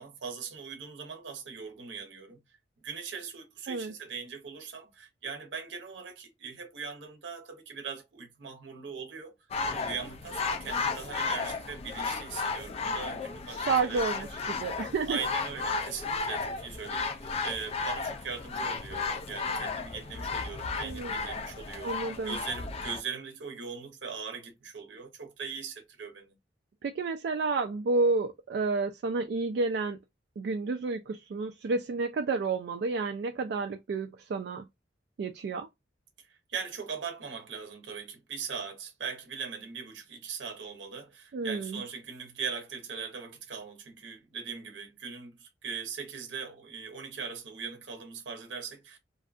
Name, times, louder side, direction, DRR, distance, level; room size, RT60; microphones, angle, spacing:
voice 1, 0.0-2.4 2.8-9.3 9.7-14.3 15.1-21.9 22.2-26.3 36.2-49.0, right 6 dB, 80° right, 0.7 m, -40 dB
sound 1, 9.5-23.0, left 4 dB, 35° left, 0.3 m, -34 dB
voice 2, 13.6-15.2 20.8-21.1 21.8-22.4 26.8-30.0 30.4-34.7 35.2-35.7 41.3-41.8, right 3 dB, 60° right, 0.3 m, -30 dB
2.6 x 2.3 x 2.4 m
head